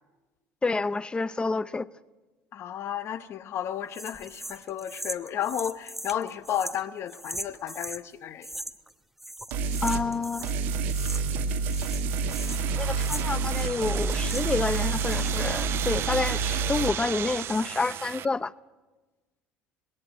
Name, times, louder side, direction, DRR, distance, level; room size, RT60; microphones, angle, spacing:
voice 1, 0.6-1.9 9.8-10.5 12.7-18.5, left 3 dB, 20° left, 0.6 m, -28 dB
voice 2, 2.5-8.5, left 10 dB, 55° left, 1.1 m, -33 dB
sound 1, 3.9-8.0 8.4-8.9 9.2-10.6 10.9-11.4 11.7-14.6 14.9-15.5, right 1 dB, 5° right, 1.0 m, -39 dB
sound 2, 9.5-10.0 10.4-16.9, right 4 dB, 85° right, 1.9 m, -28 dB
sound 3, 12.2-18.3, right 11 dB, 55° right, 0.7 m, -35 dB
20.0 x 17.5 x 9.0 m
supercardioid pair, 90°, 5 cm